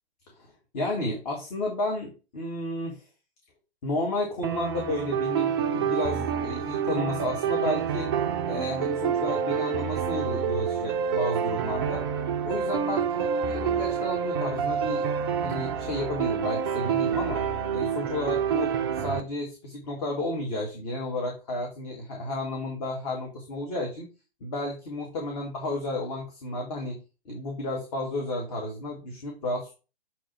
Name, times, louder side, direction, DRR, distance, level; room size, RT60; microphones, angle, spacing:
voice 1, 0.3-3.0 3.8-8.1 8.5-12.0 12.4-17.4 17.7-24.1 24.4-27.0 27.3-29.7, left 1 dB, 40° left, 0 dB, 1.7 m, -32 dB
sound 1, 4.4-19.2, right 7 dB, 25° right, 0.4 m, -28 dB
6.9 x 3.0 x 4.5 m, 0.31 s
figure-of-eight pair, 120°, 29 cm